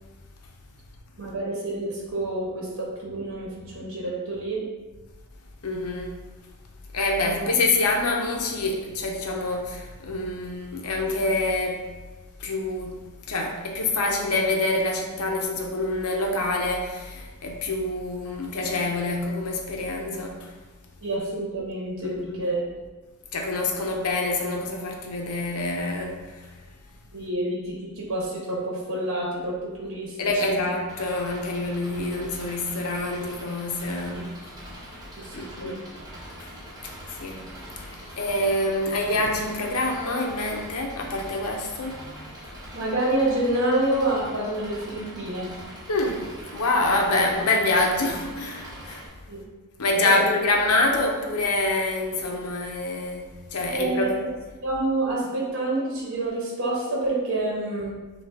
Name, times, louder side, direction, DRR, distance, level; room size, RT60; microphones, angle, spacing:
voice 1, 1.2-4.6 7.2-7.5 21.0-22.7 27.1-30.2 30.4-30.6 35.2-35.8 42.7-45.5 49.3-49.4 50.0-50.2 53.7-54.3 54.6-58.0, right 2 dB, 60° right, 1.0 m, -28 dB
voice 2, 5.6-6.2 6.9-11.9 12.4-13.0 13.3-20.5 22.0-22.5 23.3-26.3 30.2-34.4 35.3-35.9 37.1-37.5 38.2-42.3 45.9-49.0 49.8-54.2, left 2 dB, 80° left, 0.7 m, -26 dB
Engine, 30.9-49.1, equal, 15° right, 0.9 m, -43 dB
5.8 x 2.4 x 3.5 m
head